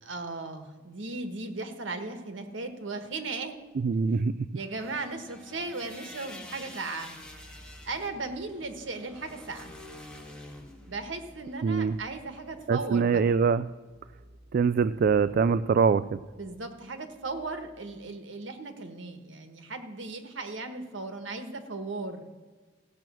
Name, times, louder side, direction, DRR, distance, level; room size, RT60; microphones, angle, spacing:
voice 1, 0.0-3.6 4.5-7.2 7.8-9.7 10.9-13.2 16.4-22.3, right 3 dB, 85° right, 7 dB, 1.4 m, -37 dB
sound 1, 2.5-4.5 5.0-5.1 5.6-17.8, equal, 35° left, 1.4 m, -57 dB
voice 2, 3.8-4.5 11.6-12.0 12.7-13.7 14.5-16.2, right 5 dB, 50° right, 14 dB, 0.3 m, -24 dB
sound 2, 4.6-12.6, left 1 dB, 5° left, 1.8 m, -48 dB
15.5 x 7.7 x 6.1 m, 1.4 s
head